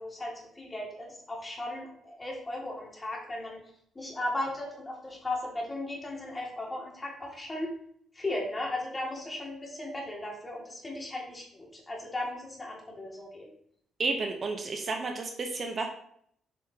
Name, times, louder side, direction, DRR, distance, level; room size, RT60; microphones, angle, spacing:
voice 1, 0.0-3.6 3.9-7.8 8.1-13.5, left 1 dB, 20° left, -2 dB, 2.2 m, -36 dB
voice 2, 14.0-15.9, right 3 dB, 45° right, 4 dB, 0.8 m, -31 dB
7.1 x 5.5 x 2.9 m, 0.67 s
cardioid pair, 90°, 0 cm